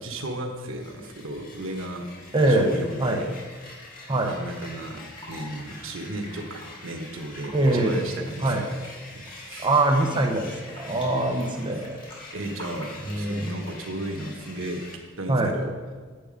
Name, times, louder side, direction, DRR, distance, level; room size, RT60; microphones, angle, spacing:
voice 1, 0.0-3.3 3.7-3.8 4.2-8.7 9.1-9.7 10.9-11.1 11.7-11.9 12.3-14.8 15.2-15.7, right 1 dB, 90° right, 3 dB, 1.2 m, -34 dB
sound 1, 0.6-15.0, left 2 dB, 45° left, 1.8 m, -45 dB
voice 2, 2.3-2.7 3.0-3.2 4.1-4.3 7.5-8.0 8.4-8.6 9.6-12.0 13.1-13.5 15.3-15.5, right 2 dB, 25° right, 1 dB, 0.9 m, -23 dB
Fill (with liquid), 4.6-6.7 7.3-7.9 8.2-11.1 11.4-13.8 14.3-14.7, left 1 dB, 25° left, 2.7 m, -46 dB
9.2 x 7.5 x 5.1 m, 1.5 s
head